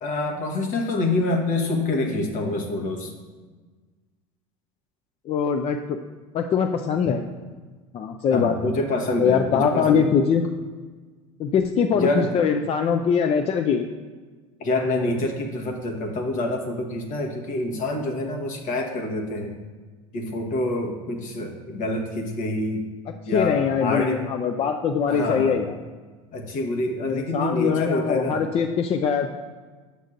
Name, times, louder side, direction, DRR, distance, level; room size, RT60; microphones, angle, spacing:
voice 1, 0.0-3.1 8.3-10.1 11.9-12.3 14.6-19.6 20.1-22.9 23.3-24.2 25.1-25.6 26.3-28.4, left 2 dB, 50° left, 3 dB, 1.2 m, -26 dB
voice 2, 5.3-6.0 6.3-7.3 7.9-8.5 9.2-10.5 11.4-13.9 23.3-25.8 27.0-29.3, left 6 dB, 35° left, 6 dB, 0.4 m, -22 dB
8.0 x 6.4 x 2.5 m, 1.4 s
hypercardioid pair, 85°, 17 cm